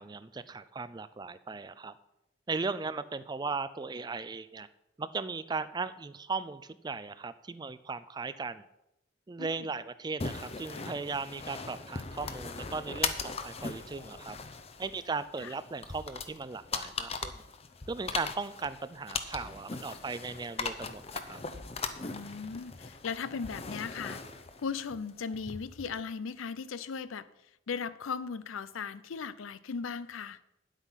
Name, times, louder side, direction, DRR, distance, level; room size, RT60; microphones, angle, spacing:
voice 1, 0.0-1.9 2.5-4.7 5.0-8.6 9.3-14.4 14.8-17.3 17.9-21.4, right 4 dB, 20° right, 15 dB, 0.3 m, -37 dB
sound 1, 10.2-26.0, left 4 dB, 30° left, 0.7 m, -39 dB
voice 2, 22.1-24.2 24.6-27.3 27.7-30.4, left 5 dB, 80° left, 16 dB, 0.5 m, -37 dB
10.0 x 8.2 x 5.7 m, 0.89 s
head